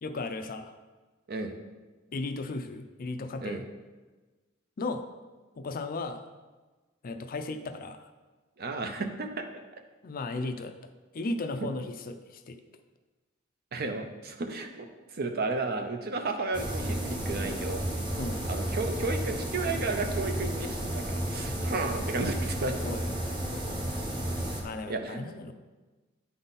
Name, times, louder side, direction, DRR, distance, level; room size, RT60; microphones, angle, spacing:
voice 1, 0.0-0.7 2.1-3.6 4.8-5.0 5.6-6.3 7.0-8.1 10.0-10.7 11.1-12.6 18.2-18.4 22.8-23.8 24.6-25.5, left 2 dB, 45° left, 8 dB, 0.5 m, -36 dB
voice 2, 8.6-9.4 13.7-17.8 18.5-22.8 24.9-25.2, right 3 dB, 50° right, 6 dB, 0.6 m, -33 dB
sound 1, 16.5-24.6, right 1 dB, 25° right, 1.1 m, -32 dB
9.7 x 4.0 x 4.0 m, 1.2 s
head